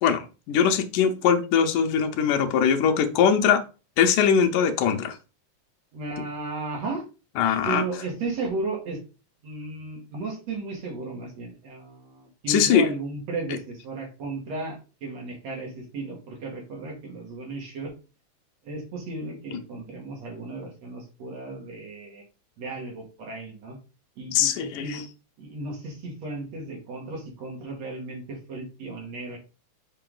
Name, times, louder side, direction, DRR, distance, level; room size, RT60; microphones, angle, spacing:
voice 1, 0.0-3.6 4.0-5.2 7.4-7.8 12.5-12.9 24.3-25.0, left 7 dB, 85° left, 2.4 m, -21 dB
voice 2, 5.9-7.1 7.7-9.0 9.4-17.9 18.6-22.2 22.6-23.8 24.2-25.0 25.4-29.4, right 3 dB, 60° right, 3.5 m, -34 dB
7.9 x 4.7 x 3.8 m
omnidirectional pair, 3.5 m